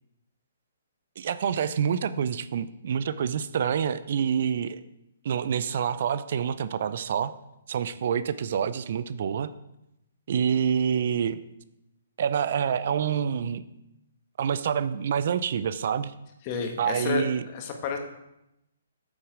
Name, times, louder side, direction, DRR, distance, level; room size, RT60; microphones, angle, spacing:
voice 1, 1.2-4.8 5.2-7.3 7.7-9.5 10.3-11.4 12.2-13.6 14.4-16.1 16.8-17.4, right 7 dB, 55° right, 15 dB, 0.5 m, -27 dB
voice 2, 16.5-17.2 17.5-18.0, left 6 dB, 35° left, 4 dB, 1.6 m, -30 dB
8.8 x 7.3 x 4.8 m, 0.87 s
hypercardioid pair, 135°, 0 cm